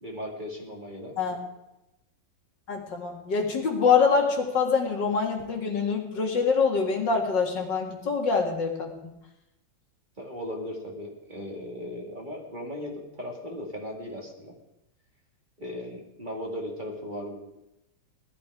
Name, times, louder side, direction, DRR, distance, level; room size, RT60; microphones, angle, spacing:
voice 1, 0.0-1.2 10.2-14.6 15.6-17.4, left 1 dB, 25° right, 0 dB, 2.3 m, -37 dB
voice 2, 2.7-8.9, left 5 dB, 70° left, 1 dB, 2.6 m, -25 dB
17.5 x 12.0 x 4.8 m, 0.90 s
omnidirectional pair, 2.0 m